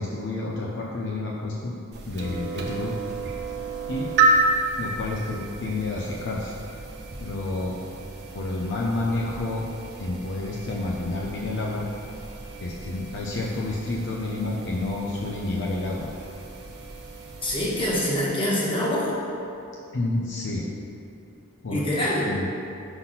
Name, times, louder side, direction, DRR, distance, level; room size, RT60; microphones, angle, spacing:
voice 1, 0.0-1.8 2.1-3.0 3.9-4.1 4.8-6.5 7.2-7.8 8.3-9.6 10.0-11.9 12.6-16.1 19.9-20.7 21.6-21.8 22.3-22.5, left 2 dB, 55° left, -2 dB, 0.6 m, -29 dB
sound 1, 1.9-18.0, right 2 dB, 50° right, 0.8 m, -31 dB
voice 2, 17.4-19.1 21.7-22.3, left 1 dB, 25° left, -6 dB, 1.4 m, -25 dB
5.7 x 4.1 x 5.6 m, 2.6 s
head